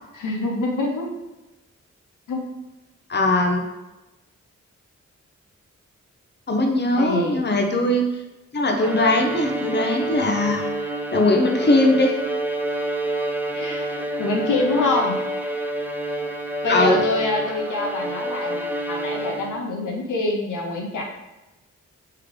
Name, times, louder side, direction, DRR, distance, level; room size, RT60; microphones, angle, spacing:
voice 1, 0.1-1.1 2.3-2.4 6.9-7.4 13.5-13.9 14.2-15.2 16.6-21.0, left 2 dB, 75° left, 0 dB, 0.7 m, -25 dB
voice 2, 3.1-3.6 6.5-8.0 8.5-10.6 11.1-12.1 16.7-17.0, left 1 dB, 35° left, 2 dB, 0.8 m, -20 dB
Bowed string instrument, 8.8-19.8, right 1 dB, 5° right, 0.4 m, -28 dB
3.3 x 3.3 x 3.7 m, 1.0 s
cardioid pair, 45°, 31 cm